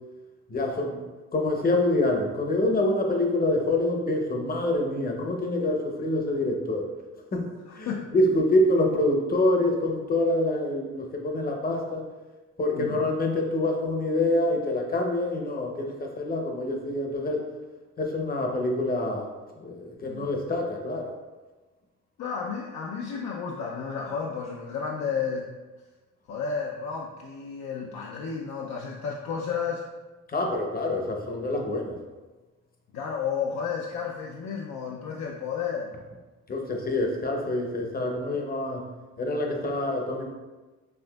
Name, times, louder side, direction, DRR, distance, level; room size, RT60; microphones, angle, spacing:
voice 1, 0.5-1.0 1.3-6.9 7.3-7.4 7.8-12.1 12.6-17.4 18.0-19.3 19.6-21.1 30.3-32.0 36.5-38.8 39.2-40.3, left 1 dB, 30° left, 2 dB, 0.7 m, -26 dB
voice 2, 7.7-8.1 12.8-13.0 20.1-20.3 22.2-25.5 26.3-29.8 32.9-35.9, left 6 dB, 65° left, -1 dB, 0.5 m, -32 dB
5.8 x 2.5 x 2.3 m, 1.2 s
cardioid pair, 90°, 30 cm